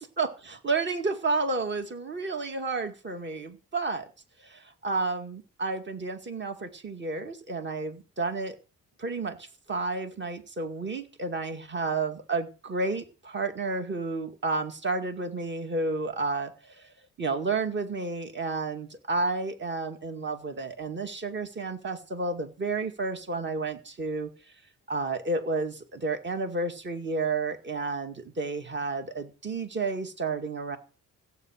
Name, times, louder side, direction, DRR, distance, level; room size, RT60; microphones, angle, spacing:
voice 1, 0.2-4.1 4.4-8.6 9.0-24.5 24.9-30.8, right 3 dB, 35° right, 7 dB, 2.2 m, -31 dB
16.5 x 8.8 x 6.4 m, 0.34 s
cardioid pair, 105°, 32 cm